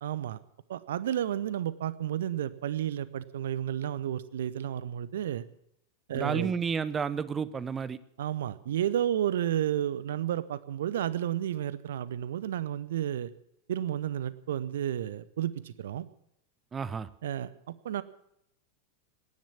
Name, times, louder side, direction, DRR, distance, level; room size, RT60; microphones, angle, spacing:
voice 1, 0.0-0.4 0.7-5.4 6.1-6.5 8.2-13.3 13.7-16.1 17.2-18.0, right 11 dB, 60° right, 18 dB, 0.7 m, -31 dB
voice 2, 6.1-8.0 16.7-17.1, right 6 dB, 20° right, 18 dB, 0.7 m, -31 dB
18.0 x 10.5 x 7.1 m, 0.75 s
figure-of-eight pair, 90°, 0 cm